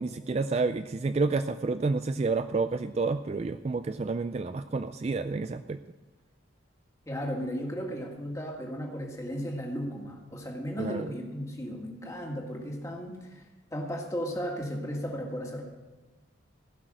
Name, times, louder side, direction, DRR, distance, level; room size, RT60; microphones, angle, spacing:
voice 1, 0.0-5.8 10.8-11.1, right 3 dB, 30° right, 10 dB, 0.3 m, -29 dB
voice 2, 7.1-13.4 13.7-15.6, equal, 15° left, 0 dB, 1.9 m, -35 dB
16.0 x 6.3 x 7.7 m, 1.2 s
head